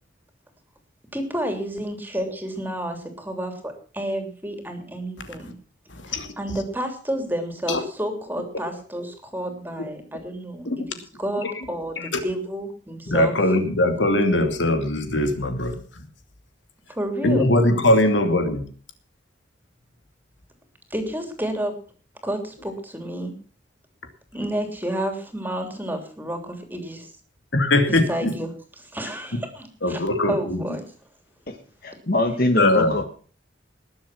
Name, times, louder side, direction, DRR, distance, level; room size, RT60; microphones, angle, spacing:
voice 1, 1.1-5.5 6.1-10.7 11.2-13.3 16.9-17.5 20.9-21.8 22.2-23.3 24.3-27.1 27.9-28.5 28.8-30.9, right 1 dB, 10° right, 6 dB, 3.1 m, -30 dB
voice 2, 13.1-15.8 17.2-18.6 27.5-28.4 29.8-30.6 32.6-33.0, left 1 dB, 80° left, 7 dB, 2.7 m, -20 dB
voice 3, 31.8-33.0, left 1 dB, 50° left, 7 dB, 1.6 m, -23 dB
20.5 x 7.7 x 6.0 m, 0.42 s
head